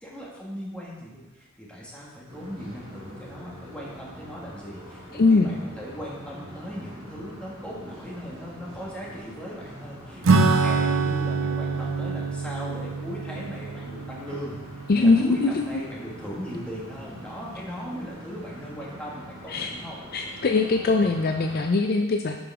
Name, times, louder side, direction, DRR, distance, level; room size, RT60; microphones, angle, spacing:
voice 1, 0.0-14.6 15.0-20.0 21.0-21.1, equal, 5° left, -5 dB, 1.8 m, -38 dB
sound 1, 2.3-21.7, equal, 25° right, 2.9 m, -44 dB
voice 2, 5.1-5.6 14.9-15.7 19.5-19.7 20.1-22.4, left 3 dB, 50° left, 4 dB, 0.5 m, -21 dB
Acoustic guitar / Strum, 10.2-16.2, right 4 dB, 85° right, 0.6 m, -25 dB
10.0 x 5.1 x 3.6 m, 1.1 s
head